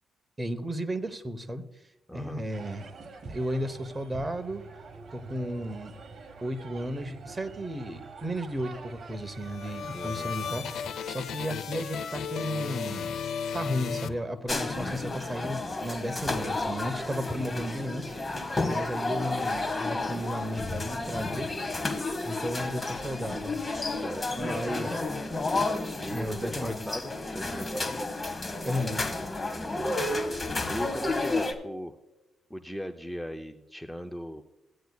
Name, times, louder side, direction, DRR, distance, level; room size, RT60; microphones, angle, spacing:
voice 1, 0.4-1.6 2.1-2.8 3.3-4.6 5.1-5.9 6.4-13.2 13.5-18.1 18.7-21.5 22.2-23.6 24.4-25.0 26.1-26.8 28.6-29.0, equal, 20° right, 8 dB, 0.9 m, -34 dB
voice 2, 2.1-2.4 9.9-10.3 23.9-25.3 26.0-28.0 29.5-30.2 30.7-32.0 32.5-34.4, equal, 5° left, 5 dB, 0.5 m, -39 dB
sound 1, 2.5-10.9, right 4 dB, 50° right, 1.4 m, -45 dB
sound 2, 9.2-14.8, left 7 dB, 80° left, 0.7 m, -35 dB
sound 3, 14.5-31.5, left 2 dB, 25° left, 1.3 m, -31 dB
15.5 x 9.3 x 2.3 m, 0.99 s
cardioid pair, 100°, 0 cm